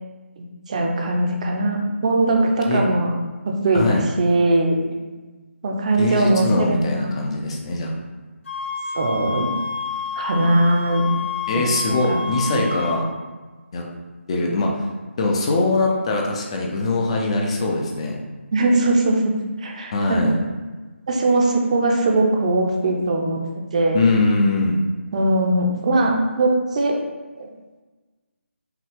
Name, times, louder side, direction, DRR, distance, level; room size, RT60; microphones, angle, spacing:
voice 1, 0.7-3.1 3.5-4.8 5.6-7.2 8.9-9.5 10.2-11.1 11.9-12.2 12.5-12.6 18.5-20.2 21.1-23.4 23.7-24.0 25.1-27.0 27.4-27.5, right 2 dB, 35° right, 1 dB, 0.6 m, -20 dB
voice 2, 3.7-4.0 6.0-7.9 11.5-13.0 13.7-13.8 14.3-14.8 15.2-18.2 19.9-20.4 23.9-24.8, left 2 dB, 25° left, 0 dB, 0.5 m, -22 dB
sound 1, 8.4-13.0, left 5 dB, 70° left, 1.3 m, -29 dB
5.8 x 2.3 x 3.5 m, 1.3 s
figure-of-eight pair, 160°, 7 cm